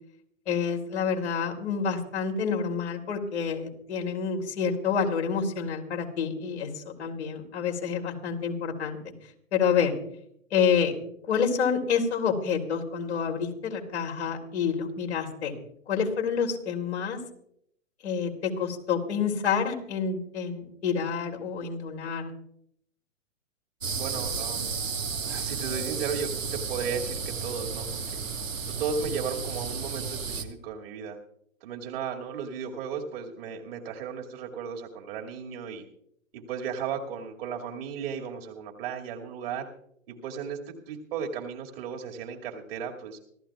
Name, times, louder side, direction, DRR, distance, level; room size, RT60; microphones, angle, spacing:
voice 1, 0.5-9.0 9.5-9.9 10.5-10.9 11.3-15.5 15.9-17.2 18.0-22.3, left 6 dB, 60° left, 2 dB, 3.4 m, -28 dB
sound 1, 23.8-30.4, right 5 dB, 75° right, 1.8 m, -33 dB
voice 2, 24.0-24.7 25.2-28.0 28.7-31.2 31.6-35.9 36.3-39.7 40.1-43.2, right 6 dB, 45° right, 1 dB, 2.4 m, -35 dB
25.5 x 14.5 x 2.4 m, 0.71 s
figure-of-eight pair, 115°, 39 cm